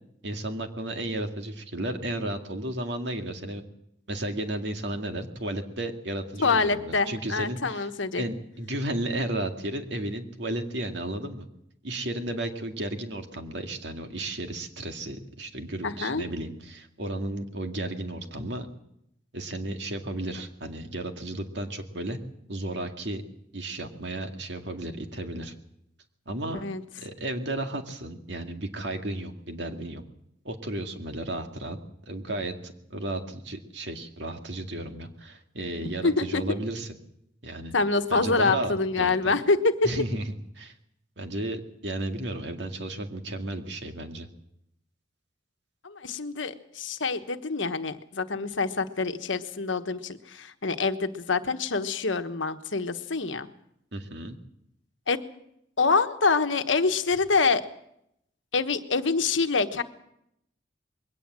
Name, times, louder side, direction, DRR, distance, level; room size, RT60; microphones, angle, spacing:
voice 1, 0.2-3.6 4.1-7.9 8.2-11.5 11.8-18.7 19.3-22.2 22.5-23.2 23.5-25.5 26.3-26.6 27.0-30.0 30.4-31.8 32.1-36.9 37.4-37.7 38.1-39.3 39.8-40.7 41.2-44.3 53.9-54.4, right 1 dB, 65° right, 5 dB, 2.1 m, -33 dB
voice 2, 6.4-8.2 15.8-16.2 26.5-26.8 36.0-36.4 37.7-39.9 45.8-53.5 55.1-55.2 55.8-57.7 58.5-59.8, left 4 dB, 80° left, 9 dB, 1.3 m, -26 dB
21.5 x 17.5 x 7.5 m, 0.77 s
head